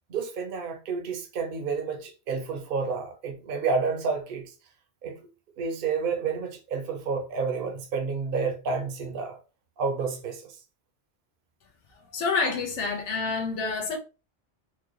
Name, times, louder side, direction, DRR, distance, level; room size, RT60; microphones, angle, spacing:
voice 1, 0.1-4.5 5.0-5.2 5.6-9.4 9.8-10.6, right 5 dB, 55° right, 0.9 m, -30 dB
voice 2, 12.1-14.0, left 4 dB, 80° left, 1.2 m, -28 dB
4.6 x 2.3 x 3.0 m
omnidirectional pair, 1.2 m